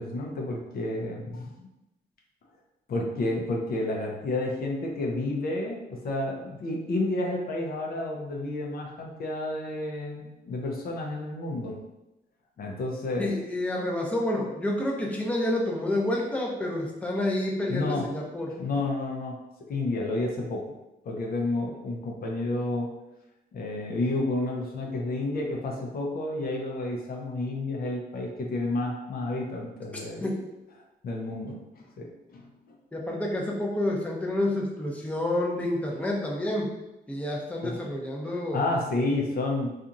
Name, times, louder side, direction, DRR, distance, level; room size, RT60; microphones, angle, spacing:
voice 1, 0.0-1.7 2.9-11.8 12.6-13.3 17.7-18.1 18.5-19.4 19.7-20.7 21.1-22.9 23.5-30.3 31.0-32.5 37.6-37.8 38.3-39.7, left 2 dB, 60° left, 0 dB, 0.6 m, -30 dB
voice 2, 13.2-18.5 30.2-30.3 32.9-36.7 37.1-38.6, left 1 dB, 10° left, -2 dB, 0.6 m, -29 dB
2.8 x 2.4 x 2.5 m, 0.95 s
cardioid pair, 80°, 17 cm